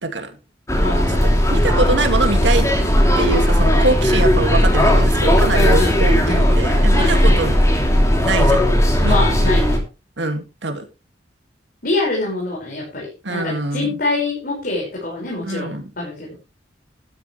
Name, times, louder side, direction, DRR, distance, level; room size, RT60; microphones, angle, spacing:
sound 1, 0.7-9.8, equal, 15° left, 3.0 m, -16 dB
voice 1, 0.8-1.4 5.5-6.5 7.0-7.4 9.1-9.8 11.8-16.4, left 2 dB, 50° left, -3 dB, 5.5 m, -25 dB
voice 2, 1.5-2.6 3.2-7.5 8.2-8.6 9.0-9.2 10.2-10.8 13.2-14.0 15.4-15.9, right 2 dB, 75° right, 6 dB, 2.3 m, -23 dB
12.5 x 12.0 x 3.3 m, 0.30 s
head